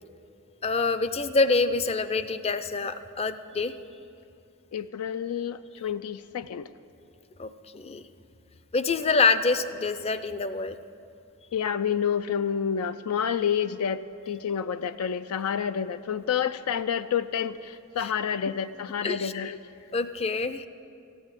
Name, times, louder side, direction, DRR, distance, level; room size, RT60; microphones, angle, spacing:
voice 1, 0.6-3.7 7.4-8.0 8.7-10.7 18.0-18.1 19.0-19.3 19.9-20.7, left 4 dB, 30° left, 12 dB, 0.5 m, -26 dB
voice 2, 4.7-6.7 11.5-19.6, left 8 dB, 85° left, 12 dB, 0.4 m, -29 dB
14.5 x 8.6 x 9.5 m, 2.7 s
head